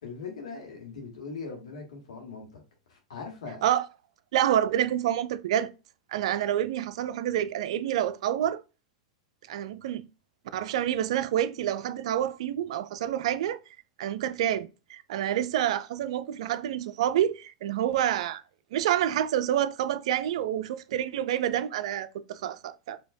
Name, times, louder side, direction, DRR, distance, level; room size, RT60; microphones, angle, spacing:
voice 1, 0.0-2.6 2.9-3.6, left 4 dB, 80° left, 1.5 m, -40 dB
voice 2, 4.3-5.7 6.1-8.6 9.5-10.0 10.5-13.6 14.0-18.4 18.7-23.0, right 11 dB, 70° right, 0.4 m, -28 dB
4.8 x 2.8 x 2.6 m
hypercardioid pair, 110°, 3 cm